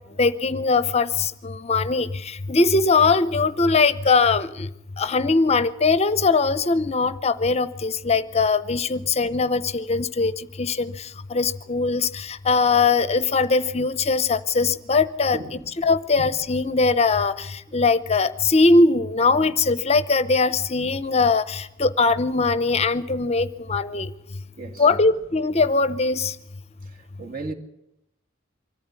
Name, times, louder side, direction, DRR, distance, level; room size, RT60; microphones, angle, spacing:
voice 1, 0.2-4.7 5.0-10.9 11.3-24.1 24.8-26.3, left 4 dB, 30° left, 0.7 m, -21 dB
voice 2, 15.3-15.7 16.2-16.3 17.7-17.8 24.6-24.9 26.8-27.5, right 3 dB, 45° right, 2.5 m, -36 dB
24.5 x 14.0 x 9.7 m
head